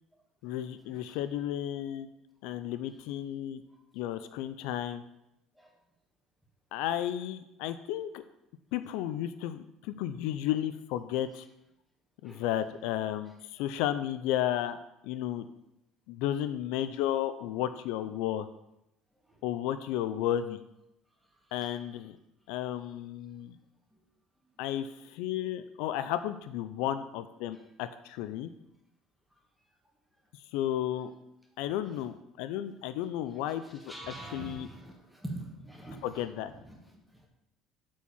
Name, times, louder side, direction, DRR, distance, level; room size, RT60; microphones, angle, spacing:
voice 1, 0.4-2.1 2.4-3.6 3.9-5.0 6.7-8.2 8.7-11.4 12.2-14.8 15.0-15.5 16.1-18.5 19.4-20.6 21.5-22.2 22.5-23.5 24.6-28.5 30.5-31.1 31.6-33.9 34.3-34.7 36.0-36.5, left 11 dB, 80° left, 11 dB, 0.5 m, -33 dB
voice 2, 33.6-36.2 36.5-36.8, right 1 dB, ahead, 0 dB, 1.7 m, -43 dB
8.7 x 4.7 x 7.1 m, 0.86 s
cardioid pair, 140°, 0 cm